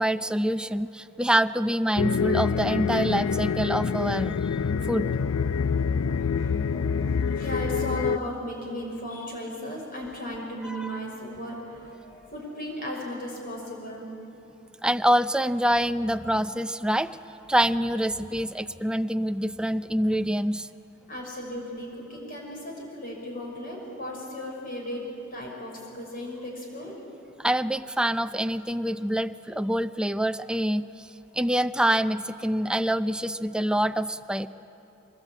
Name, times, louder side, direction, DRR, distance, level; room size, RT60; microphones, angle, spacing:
voice 1, 0.0-4.4 4.9-5.1 10.6-11.0 14.8-17.2 17.5-20.7 27.4-31.1 31.3-34.5, right 1 dB, 5° right, 11 dB, 0.5 m, -26 dB
sound 1, 2.0-8.2, left 6 dB, 70° left, 0.4 m, -26 dB
voice 2, 6.1-14.1 21.1-25.0 25.3-27.0, left 1 dB, 45° left, -1 dB, 6.1 m, -36 dB
24.0 x 21.0 x 8.9 m, 2.9 s
head